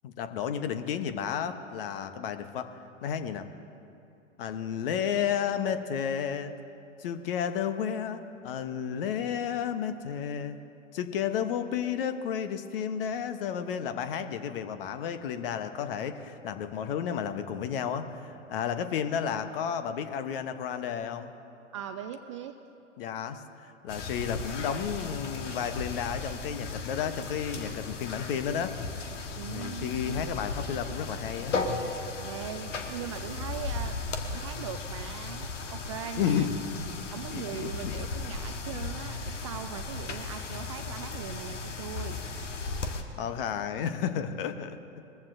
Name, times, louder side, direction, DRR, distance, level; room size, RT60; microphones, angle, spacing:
voice 1, 0.0-2.8 3.0-3.5 4.4-6.6 7.0-10.6 10.9-21.3 23.0-28.8 29.5-31.5 36.2-36.6 37.3-38.0 43.2-45.0, left 8 dB, 45° left, 9 dB, 1.0 m, -32 dB
voice 2, 21.7-22.6 29.4-30.2 32.2-34.0 34.3-36.5 37.1-42.2, right 9 dB, 25° right, 8 dB, 0.3 m, -40 dB
sound 1, 23.9-43.0, left 3 dB, 70° left, 1.4 m, -36 dB
21.5 x 14.5 x 2.6 m, 2.8 s
figure-of-eight pair, 105°, 38 cm